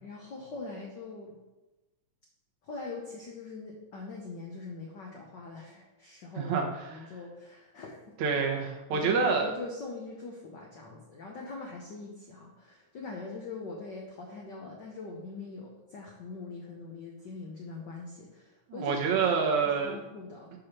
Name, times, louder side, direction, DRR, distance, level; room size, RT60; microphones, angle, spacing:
voice 1, 0.0-1.4 2.6-8.3 8.9-19.0 19.8-20.5, left 3 dB, 90° left, 0 dB, 0.9 m, -42 dB
voice 2, 6.4-7.1 8.2-9.5 18.7-20.0, right 5 dB, 75° right, 1 dB, 2.4 m, -27 dB
6.3 x 5.2 x 5.9 m, 1.1 s
omnidirectional pair, 3.3 m